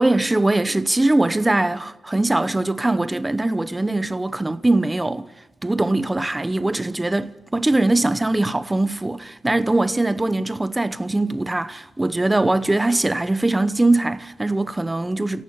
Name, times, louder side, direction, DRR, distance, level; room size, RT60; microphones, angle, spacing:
voice 1, 0.0-5.3 5.6-15.4, right 2 dB, 15° right, 0.9 m, -21 dB
29.0 x 12.0 x 9.7 m
wide cardioid pair, 110°, 0 cm